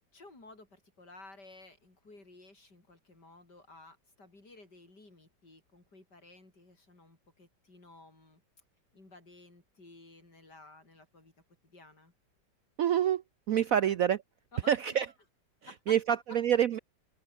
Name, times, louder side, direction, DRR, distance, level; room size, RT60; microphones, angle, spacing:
voice 1, 0.1-8.4 8.9-11.3 11.6-12.1 13.9-14.0 14.5-15.1 15.6-15.9, left 2 dB, 60° left, 7.0 m, -54 dB
voice 2, 12.8-14.2 14.7-15.1 15.9-16.8, right 9 dB, 65° right, 0.9 m, -27 dB
open air
omnidirectional pair, 2.0 m